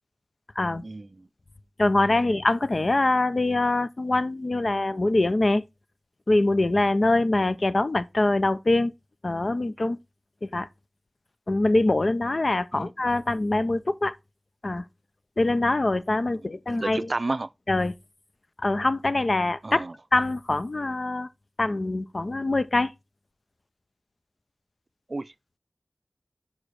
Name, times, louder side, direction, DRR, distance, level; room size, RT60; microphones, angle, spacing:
voice 1, 0.8-1.3 12.7-12.9 16.4-17.5 19.6-19.9 25.1-25.3, right 2 dB, 65° right, 0.4 m, -32 dB
voice 2, 1.8-5.6 6.3-8.9 9.2-10.0 10.4-10.7 11.5-14.2 14.6-14.8 15.4-17.1 17.7-17.9 18.6-19.8 20.1-21.3 21.6-22.9, left 2 dB, 65° left, 0.6 m, -24 dB
5.5 x 4.9 x 6.2 m
wide cardioid pair, 40°, 0 cm